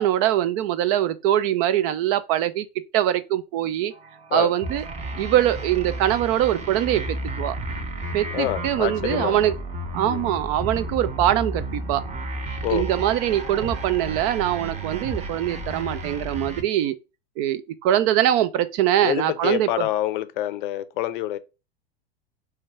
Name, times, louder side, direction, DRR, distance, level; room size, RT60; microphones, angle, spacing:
voice 1, 0.0-2.7 2.9-3.9 4.3-4.8 5.2-7.6 8.1-9.5 9.9-12.0 12.7-17.0 17.4-19.9, right 12 dB, 40° right, 0.4 m, -23 dB
sound 1, 3.9-16.4, right 3 dB, 85° right, 0.7 m, -43 dB
sound 2, 4.6-16.6, right 1 dB, 20° right, 0.8 m, -32 dB
voice 2, 8.3-9.4 10.0-10.3 12.6-12.8 19.0-21.4, left 14 dB, 55° left, 0.6 m, -27 dB
4.4 x 2.3 x 4.3 m
figure-of-eight pair, 85°, 31 cm